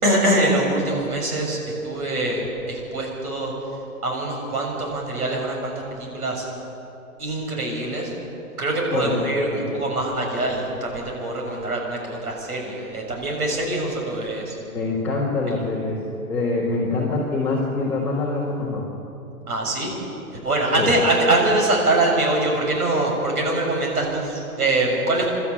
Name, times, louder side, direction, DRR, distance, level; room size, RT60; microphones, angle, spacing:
voice 1, 0.0-1.6 1.8-3.5 4.0-5.7 6.1-6.5 7.2-8.1 8.6-14.5 19.5-19.9 20.4-25.3, right 2 dB, 75° right, 0 dB, 6.7 m, -23 dB
voice 2, 8.9-9.2 9.5-9.7 14.7-16.0 16.3-18.8 20.8-21.0, left 3 dB, 5° left, -10 dB, 1.4 m, -24 dB
24.0 x 12.5 x 8.6 m, 2.9 s
hypercardioid pair, 180°, 45 cm